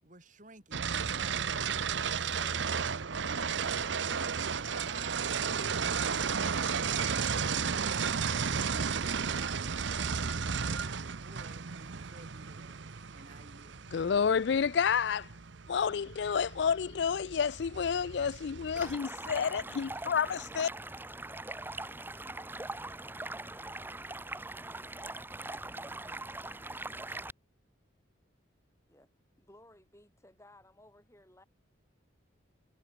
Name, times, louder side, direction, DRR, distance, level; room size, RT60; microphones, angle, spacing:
voice 1, 0.0-1.6 1.9-2.8 3.3-4.3 4.7-6.3 6.8-7.4 7.7-12.8 13.1-13.9, right 3 dB, 40° right, 6.0 m, -53 dB
sound 1, 0.7-19.0, right 6 dB, 65° right, 0.8 m, -34 dB
voice 2, 13.9-15.3 15.7-20.7, left 6 dB, 60° left, 0.4 m, -30 dB
Stream, 18.8-27.3, right 2 dB, 10° right, 1.7 m, -41 dB
voice 3, 29.4-31.4, left 1 dB, 15° left, 7.8 m, -58 dB
head